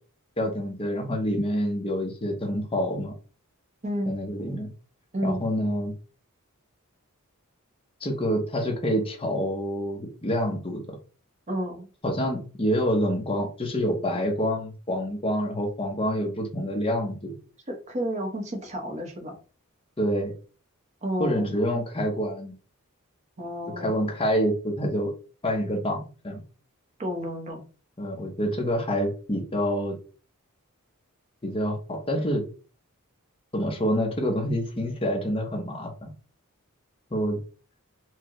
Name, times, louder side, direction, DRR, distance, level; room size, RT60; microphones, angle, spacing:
voice 1, 0.4-3.1 4.1-4.7 5.2-5.9 8.0-11.0 12.0-17.4 20.0-20.3 21.2-22.5 23.8-25.1 25.4-26.4 28.0-30.0 31.4-32.4 33.5-36.1 37.1-37.4, equal, 25° left, 0.8 m, -27 dB
voice 2, 11.5-11.9 17.7-19.3 21.0-21.6 23.4-24.0 27.0-27.6, equal, 30° right, 0.9 m, -31 dB
4.6 x 2.2 x 3.0 m
head